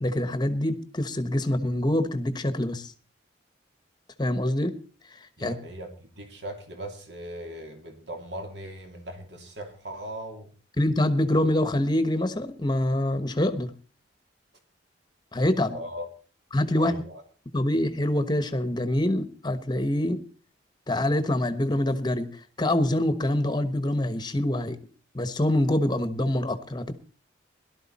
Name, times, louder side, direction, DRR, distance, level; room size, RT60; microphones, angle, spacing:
voice 1, 0.0-2.9 4.2-4.7 5.1-5.5 10.8-13.7 15.3-15.8 16.5-17.0 17.5-20.2 20.9-24.8 25.1-26.9, left 1 dB, 20° left, 1.1 m, -25 dB
voice 2, 5.4-10.5 15.7-16.1 16.8-17.2, right 1 dB, 60° right, 3.0 m, -39 dB
17.5 x 12.0 x 4.2 m
head